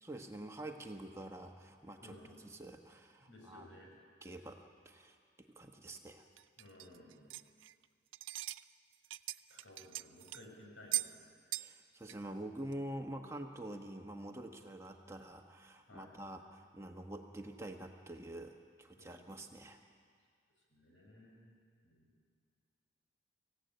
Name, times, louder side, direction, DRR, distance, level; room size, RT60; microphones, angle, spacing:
voice 1, 0.0-3.7 4.2-6.2 11.6-19.8, right 1 dB, 15° right, 3 dB, 1.1 m, -47 dB
voice 2, 2.0-2.4 3.3-3.9 6.6-7.3 9.5-11.2 15.9-16.1 19.0-19.3 20.7-21.5 21.8-22.1, left 1 dB, 85° left, 0 dB, 6.2 m, -57 dB
sound 1, 6.4-7.8 8.1-8.6 8.9-10.5 10.9-11.1 11.5-11.8 12.0-12.1 12.7-12.8, right 17 dB, 85° right, 0.5 m, -40 dB
25.0 x 16.0 x 9.1 m, 2.1 s
head